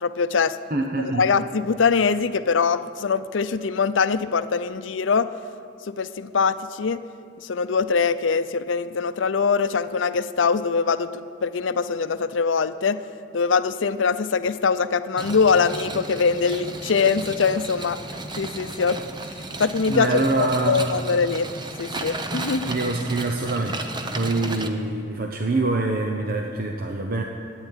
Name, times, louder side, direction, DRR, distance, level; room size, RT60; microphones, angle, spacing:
voice 1, 0.0-0.6 1.2-5.3 5.9-7.0 7.4-13.0 13.3-18.0 18.4-19.0 19.6-21.5 21.8-22.7, left 5 dB, 80° left, 13 dB, 0.6 m, -23 dB
voice 2, 0.7-1.3 19.9-20.9 22.7-23.8 24.1-27.2, right 2 dB, 50° right, 2 dB, 0.9 m, -25 dB
sound 1, 15.2-24.7, right 2 dB, 25° right, 0.8 m, -34 dB
13.0 x 9.0 x 9.9 m, 2.4 s
head